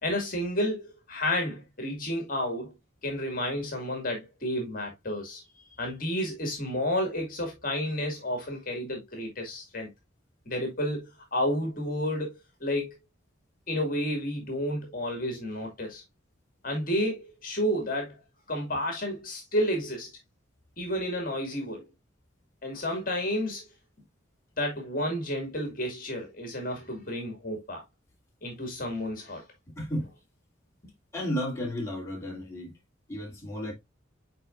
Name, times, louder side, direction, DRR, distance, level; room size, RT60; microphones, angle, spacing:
voice 1, 0.0-2.7 3.0-9.9 10.5-13.0 13.7-16.0 16.6-18.2 18.5-20.1 20.8-21.9 22.6-23.7 24.6-27.8 28.4-29.4, left 1 dB, 45° left, 2.0 m, -31 dB
voice 2, 29.8-30.1 31.1-32.7 33.1-33.7, equal, 15° left, 2.5 m, -33 dB
8.4 x 4.7 x 2.5 m
head